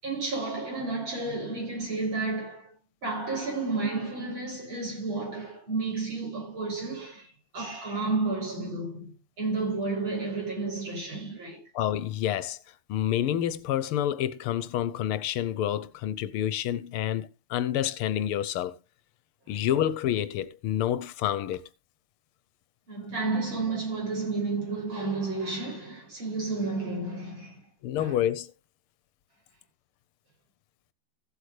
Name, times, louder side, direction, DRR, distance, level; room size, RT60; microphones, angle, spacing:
voice 1, 0.0-2.7 3.0-11.6 19.5-19.6 22.9-27.7 28.0-28.2, right 3 dB, 65° right, 7.0 m, -31 dB
voice 2, 11.7-12.6 12.9-18.8 19.5-21.6 27.8-28.5, left 11 dB, 85° left, 1.6 m, -28 dB
16.0 x 8.2 x 3.2 m
omnidirectional pair, 2.4 m